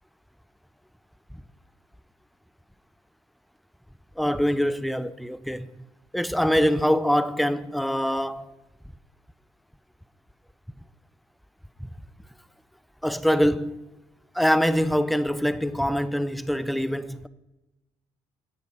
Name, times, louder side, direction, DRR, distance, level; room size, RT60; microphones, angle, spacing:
voice 1, 4.2-5.7 6.1-8.5 13.0-13.8 14.3-17.3, equal, ahead, 0.5 m, -24 dB
13.0 x 8.0 x 5.6 m
cardioid pair, 100°, 12 cm